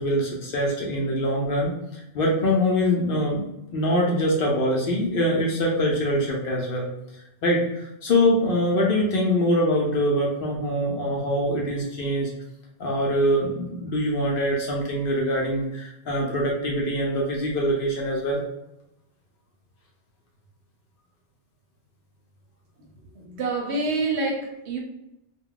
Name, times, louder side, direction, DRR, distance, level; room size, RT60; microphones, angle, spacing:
voice 1, 0.0-3.5 3.7-6.9 7.4-12.3 12.8-18.4, equal, 60° left, -2 dB, 0.6 m, -24 dB
voice 2, 23.2-24.8, right 3 dB, 70° right, 2 dB, 0.8 m, -27 dB
2.3 x 2.1 x 3.6 m, 0.88 s
omnidirectional pair, 1.2 m